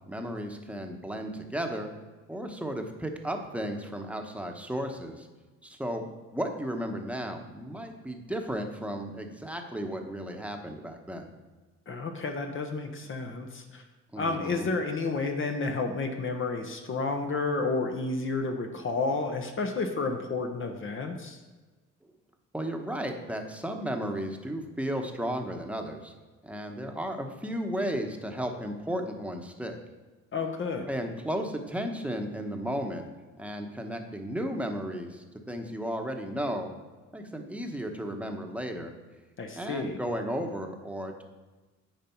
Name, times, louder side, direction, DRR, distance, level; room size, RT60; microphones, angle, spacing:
voice 1, 0.1-1.9 2.3-5.3 5.6-11.3 14.1-14.7 22.5-26.1 26.4-29.8 30.9-33.0 33.4-36.7 37.1-38.9 39.5-41.2, equal, 5° right, 4 dB, 1.1 m, -34 dB
voice 2, 11.9-13.8 14.2-21.4 30.3-30.9 39.4-40.0, left 3 dB, 40° left, 4 dB, 0.9 m, -31 dB
9.2 x 5.2 x 4.5 m, 1.3 s
cardioid pair, 90°, 30 cm